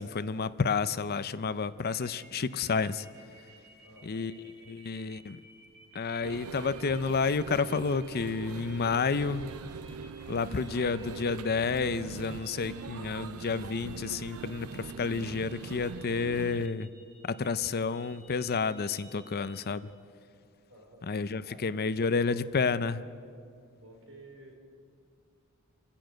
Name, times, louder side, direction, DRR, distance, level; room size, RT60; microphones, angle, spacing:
voice 1, 0.0-3.1 4.0-5.4 5.9-9.5 10.3-16.9 17.2-19.9 21.1-23.0, left 5 dB, 45° left, 15 dB, 0.6 m, -30 dB
sound 1, 1.8-19.7, right 4 dB, 50° right, 3.4 m, -56 dB
voice 2, 3.8-4.2 20.7-21.0 21.4-21.6 22.1-22.4 23.8-24.6, right 1 dB, 65° right, 1 dB, 4.6 m, -52 dB
sound 2, 6.2-16.7, right 5 dB, 85° right, 0.5 m, -42 dB
28.0 x 11.5 x 9.1 m, 2.3 s
head